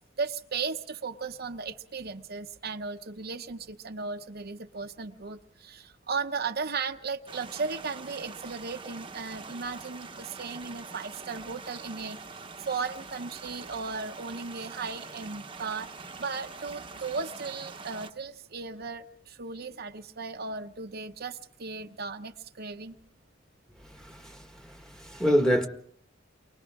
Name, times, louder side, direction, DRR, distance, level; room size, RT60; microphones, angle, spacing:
voice 1, 0.0-22.9, right 4 dB, 55° right, 0.8 m, -36 dB
sound 1, 7.3-18.1, right 4 dB, 25° right, 1.0 m, -44 dB
voice 2, 23.8-25.7, equal, 5° left, 1.7 m, -27 dB
30.0 x 24.0 x 3.6 m
head